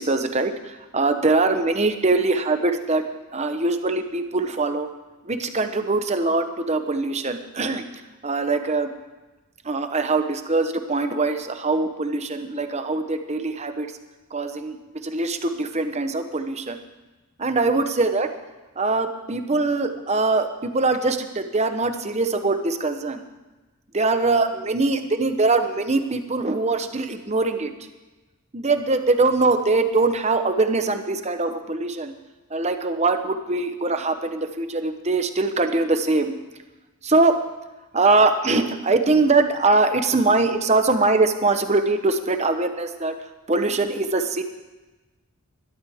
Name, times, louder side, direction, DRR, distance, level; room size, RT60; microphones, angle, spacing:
voice 1, 0.0-4.9 5.3-7.8 8.2-8.9 9.6-13.9 14.3-14.8 15.0-16.8 17.4-18.3 18.8-23.2 23.9-27.7 28.5-32.1 32.5-36.3 37.0-37.4 37.9-43.2 43.5-44.4, right 3 dB, 30° right, 8 dB, 0.9 m, -22 dB
20.5 x 12.5 x 3.6 m, 1.2 s
head